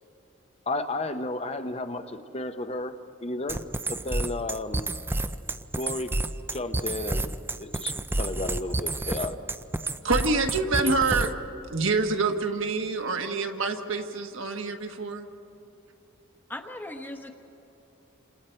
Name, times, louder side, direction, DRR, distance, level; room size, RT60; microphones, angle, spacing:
voice 1, 0.7-4.9 5.8-6.1 6.5-7.3 7.6-9.4 9.8-9.9, left 2 dB, 30° left, 9 dB, 0.8 m, -33 dB
sound 1, 3.5-11.5, right 2 dB, 10° right, 0.4 m, -29 dB
voice 2, 10.0-11.4 11.7-15.3, right 3 dB, 65° right, 5 dB, 1.3 m, -26 dB
voice 3, 16.5-17.3, left 1 dB, 10° left, 4 dB, 1.1 m, -38 dB
29.5 x 27.0 x 4.5 m, 2.9 s
head